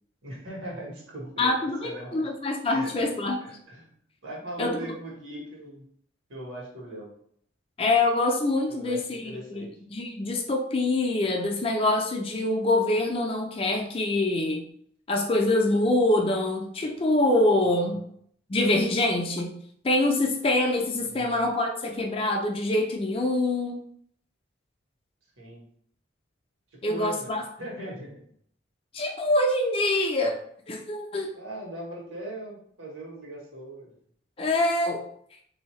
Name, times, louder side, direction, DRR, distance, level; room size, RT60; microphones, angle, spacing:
voice 1, 0.2-1.5 1.8-2.3 2.7-2.9 3.4-3.9 4.2-5.8 6.3-7.1 8.7-9.7 17.5-18.0 21.0-21.5 25.4-25.6 26.7-27.3 27.6-28.1 31.3-33.9, right 1 dB, 85° right, -3 dB, 1.3 m, -39 dB
voice 2, 1.4-3.4 4.6-4.9 7.8-9.6 9.9-14.7 15.1-18.0 18.5-19.5 19.8-23.8 26.8-27.4 28.9-30.4 30.7-31.3 34.4-35.0, left 2 dB, 30° left, 2 dB, 0.4 m, -25 dB
3.6 x 2.7 x 3.1 m, 0.64 s
head